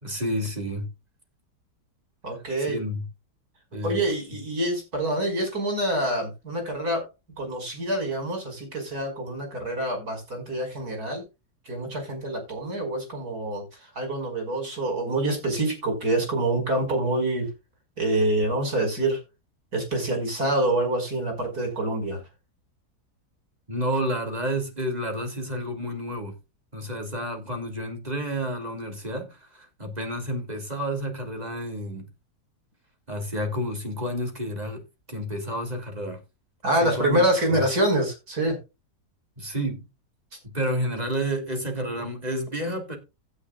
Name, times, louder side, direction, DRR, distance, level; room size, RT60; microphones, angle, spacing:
voice 1, 0.0-0.9 2.7-3.0 3.7-4.0 23.7-26.3 26.7-32.1 33.1-34.8 35.1-36.2 36.8-37.6 39.4-39.8 40.5-43.0, equal, 25° right, 3.1 m, -30 dB
voice 2, 2.2-2.8 3.8-7.0 7.4-11.2 11.7-13.6 14.0-17.5 18.0-19.2 19.7-22.2 36.6-38.6, right 1 dB, 60° right, 5.9 m, -26 dB
16.0 x 9.9 x 2.4 m
omnidirectional pair, 1.8 m